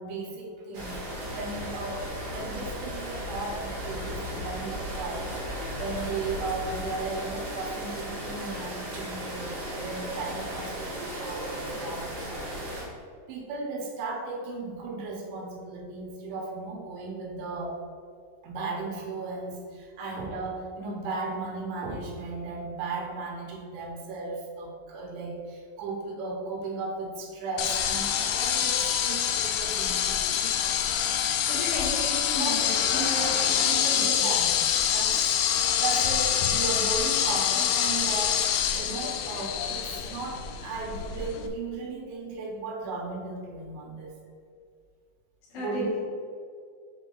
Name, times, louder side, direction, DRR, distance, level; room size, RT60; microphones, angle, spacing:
voice 1, 0.0-5.5 5.8-12.7 13.3-17.8 18.4-30.3 32.4-35.4 35.8-44.2 45.5-46.0, right 3 dB, 80° right, 0 dB, 3.2 m, -36 dB
sound 1, 0.7-12.8, equal, 55° right, 1.8 m, -36 dB
sound 2, 27.6-41.5, left 9 dB, 85° left, 2.3 m, -26 dB
voice 2, 31.5-33.5 45.5-46.0, left 1 dB, 65° left, -8 dB, 3.9 m, -34 dB
8.3 x 4.4 x 3.9 m, 2.2 s
omnidirectional pair, 5.2 m